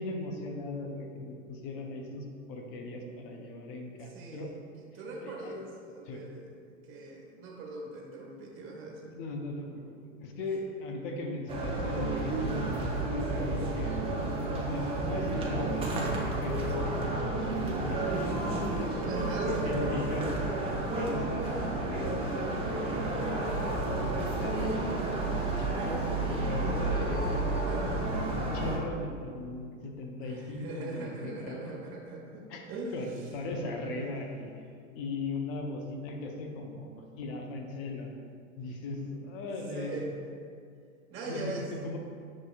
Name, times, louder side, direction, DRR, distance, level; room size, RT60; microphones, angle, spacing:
voice 1, 0.0-4.5 5.2-5.6 6.1-6.2 9.1-14.0 14.5-16.1 16.4-18.7 19.5-27.2 27.7-31.9 32.5-32.6 32.9-34.5 34.9-36.9 37.2-38.1 38.6-40.0 41.3-41.5 41.8-42.0, left 2 dB, 45° left, 2 dB, 0.6 m, -38 dB
voice 2, 4.0-9.1 19.0-20.0 27.6-27.9 30.2-33.3 38.7-38.8 39.5-40.2 41.1-41.7, right 3 dB, 35° right, -2 dB, 1.0 m, -41 dB
sound 1, 11.5-28.8, right 2 dB, 15° right, 0.5 m, -31 dB
6.0 x 2.8 x 2.4 m, 2.2 s
figure-of-eight pair, 90°, 39 cm